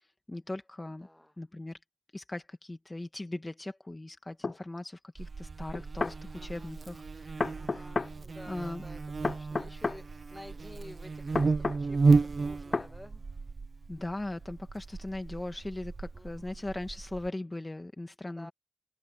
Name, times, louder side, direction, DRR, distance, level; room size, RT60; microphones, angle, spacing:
voice 1, 0.3-1.1 1.4-1.8 2.1-7.8 8.5-8.8 13.9-18.5, left 2 dB, 35° left, 1.7 m, -39 dB
voice 2, 1.0-1.3 6.4-6.7 7.5-13.2 16.1-16.6 18.4-18.5, left 1 dB, 20° left, 2.0 m, -51 dB
sound 1, 4.4-4.6 5.7-6.2 7.4-8.1 9.2-10.0 11.4-11.8 12.7-12.9, left 3 dB, 70° left, 0.6 m, -31 dB
Buzz, 5.2-17.3, right 4 dB, 85° right, 0.6 m, -32 dB
wide cardioid pair, 65°, 0 cm